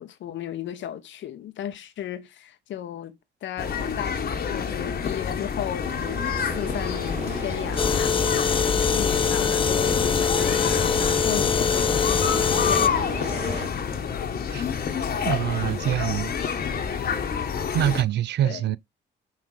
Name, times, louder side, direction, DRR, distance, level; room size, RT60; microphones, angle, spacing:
voice 1, 0.0-14.0 18.4-18.8, left 11 dB, 70° left, 0.9 m, -35 dB
sound 1, 3.6-18.0, left 6 dB, 50° left, 1.2 m, -28 dB
sound 2, 5.8-13.7, right 2 dB, 35° right, 2.2 m, -36 dB
sound 3, 7.8-12.9, left 6 dB, 25° left, 0.4 m, -23 dB
voice 2, 15.2-16.4 16.7-16.8 17.7-18.8, right 11 dB, 60° right, 0.4 m, -25 dB
5.8 x 3.5 x 4.8 m
cardioid pair, 90°, 20 cm